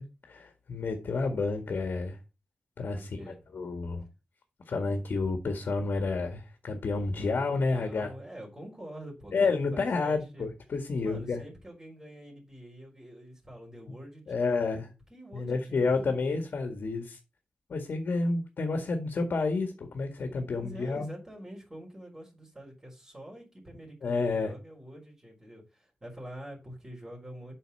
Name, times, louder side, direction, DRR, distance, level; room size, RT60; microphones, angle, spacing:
voice 1, 0.0-2.2 2.8-3.2 3.5-4.0 4.7-8.1 9.3-11.4 14.3-14.9 15.3-17.2 17.7-21.1 24.0-24.5, left 3 dB, 75° left, 1.8 m, -30 dB
voice 2, 2.9-3.4 7.2-10.5 11.0-14.9 15.1-16.7 20.5-27.5, equal, 20° right, 4.1 m, -46 dB
8.2 x 5.7 x 5.4 m
wide cardioid pair, 135°, 3 cm